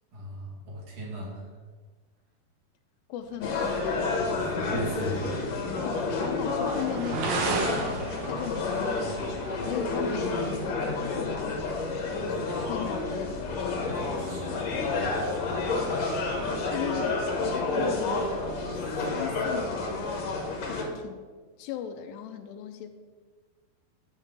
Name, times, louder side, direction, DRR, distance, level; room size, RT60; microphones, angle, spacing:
voice 1, 0.1-1.4 4.2-5.3 14.0-14.7, equal, 50° right, -5 dB, 3.3 m, -37 dB
voice 2, 3.1-3.7 5.8-7.5 8.2-9.2 9.6-11.7 12.0-13.5 16.7-21.3 21.6-23.0, left 10 dB, 85° left, 7 dB, 2.7 m, -38 dB
sound 1, 3.2-17.8, right 4 dB, 75° right, 1.7 m, -39 dB
sound 2, 3.4-20.8, left 3 dB, 60° left, 1.9 m, -30 dB
sound 3, 10.7-15.9, left 3 dB, 90° right, 5.5 m, -49 dB
12.5 x 7.2 x 3.7 m, 1.4 s
omnidirectional pair, 4.9 m